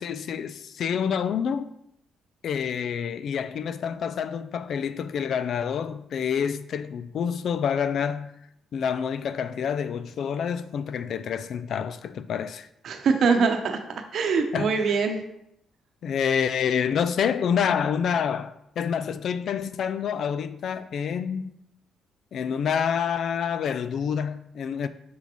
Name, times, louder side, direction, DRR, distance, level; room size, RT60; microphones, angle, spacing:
voice 1, 0.0-1.7 2.4-8.3 8.7-12.7 14.5-15.0 16.0-21.5 22.3-24.9, left 7 dB, 65° left, 0.4 m, -27 dB
voice 2, 12.8-13.8 14.1-15.2, right 5 dB, 65° right, 0.9 m, -23 dB
6.1 x 5.5 x 3.0 m
cardioid pair, 90°, 0 cm